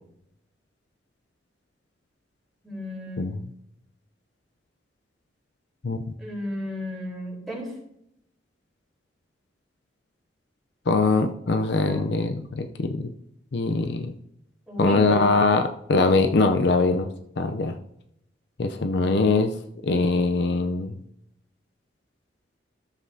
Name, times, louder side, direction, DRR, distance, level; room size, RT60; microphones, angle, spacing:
voice 1, 2.6-3.3 6.2-7.7 11.8-12.1 14.7-15.3, left 1 dB, ahead, -4 dB, 3.9 m, -33 dB
voice 2, 3.2-3.5 5.8-6.0 10.9-13.1 13.5-14.2 14.8-17.1 17.4-17.8 18.6-19.5 19.8-21.0, left 3 dB, 65° left, 7 dB, 0.5 m, -22 dB
13.0 x 7.4 x 2.7 m, 0.75 s
head